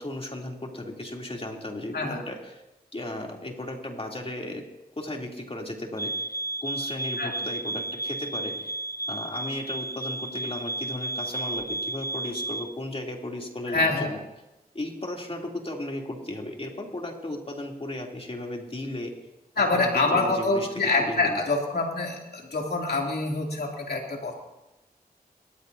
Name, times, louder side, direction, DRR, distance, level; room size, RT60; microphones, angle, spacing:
voice 1, 0.0-2.6 2.9-4.7 5.0-6.3 6.6-8.7 9.1-14.2 14.7-19.1 19.6-21.4, left 1 dB, 35° left, 0 dB, 3.3 m, -35 dB
sound 1, 6.0-12.7, right 2 dB, 20° left, 0.9 m, -33 dB
voice 2, 13.7-14.1 19.6-24.4, left 3 dB, 85° left, -1 dB, 3.1 m, -26 dB
29.0 x 14.0 x 2.9 m, 0.97 s
cardioid pair, 45°, 16 cm